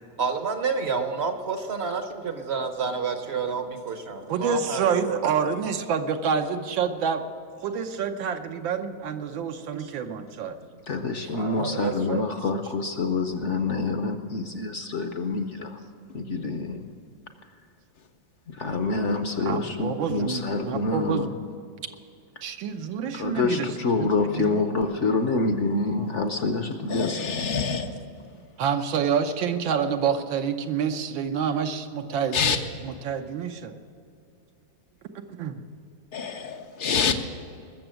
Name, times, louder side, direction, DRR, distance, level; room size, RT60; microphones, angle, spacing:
voice 1, 0.2-5.2 9.7-9.9 11.3-12.2, right 5 dB, 50° right, 7 dB, 0.8 m, -29 dB
voice 2, 4.3-7.2 7.6-10.6 19.5-21.3 22.4-23.7 24.0-24.1 24.3-24.6 28.6-33.7 35.3-35.6, right 7 dB, 85° right, 7 dB, 1.6 m, -28 dB
voice 3, 10.9-15.8 16.1-16.9 18.5-21.3 23.1-27.6, left 3 dB, 55° left, 6 dB, 0.8 m, -27 dB
voice 4, 26.9-27.9 32.3-32.6 36.1-37.1, left 6 dB, 70° left, 4 dB, 0.4 m, -26 dB
20.5 x 7.0 x 7.6 m, 2.4 s
omnidirectional pair, 2.0 m